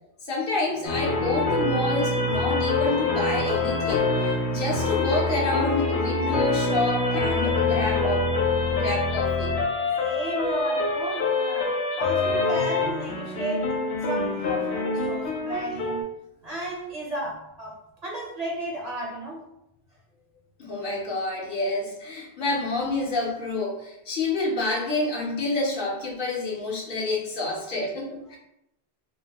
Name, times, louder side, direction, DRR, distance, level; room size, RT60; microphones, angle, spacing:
voice 1, 0.2-8.3 8.7-9.6 20.6-28.4, left 2 dB, 60° left, -3 dB, 0.7 m, -28 dB
sound 1, 0.8-16.0, left 3 dB, 90° left, 0.9 m, -25 dB
voice 2, 10.0-11.7 12.0-16.0 16.4-19.4, right 2 dB, 45° right, -4 dB, 0.6 m, -34 dB
2.8 x 2.1 x 2.8 m, 0.82 s
omnidirectional pair, 1.1 m